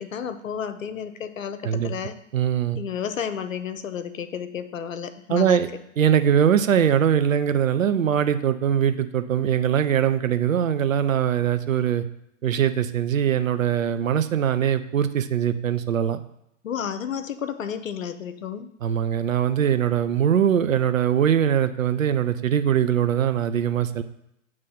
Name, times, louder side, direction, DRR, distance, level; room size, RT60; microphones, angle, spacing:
voice 1, 0.0-2.2 2.8-5.6 16.6-18.7, left 8 dB, 80° left, 11 dB, 0.7 m, -32 dB
voice 2, 2.3-2.8 5.3-5.7 6.0-12.0 12.4-16.2 18.8-24.0, right 9 dB, 80° right, 11 dB, 0.6 m, -22 dB
7.6 x 3.2 x 5.6 m, 0.79 s
figure-of-eight pair, 105°, 39 cm